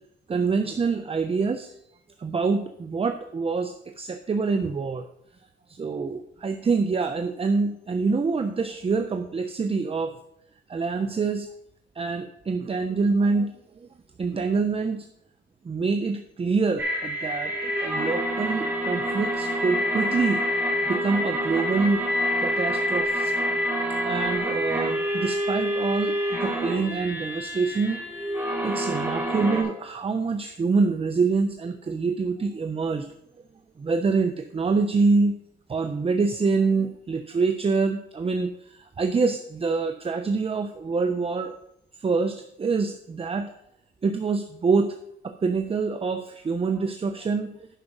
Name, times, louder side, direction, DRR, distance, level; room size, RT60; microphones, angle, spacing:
voice 1, 0.3-1.7 2.2-5.1 5.7-10.2 10.7-11.5 11.9-13.9 14.2-15.1 15.6-20.5 20.9-22.1 22.4-23.3 24.0-28.0 28.6-33.1 33.8-35.3 35.7-41.6 42.0-43.5 44.0-45.0 45.2-47.7, right 4 dB, 30° right, 7 dB, 0.8 m, -26 dB
sound 1, 16.8-29.6, equal, 10° right, 3.0 m, -27 dB
10.0 x 5.1 x 6.1 m, 0.76 s
cardioid pair, 90°, 20 cm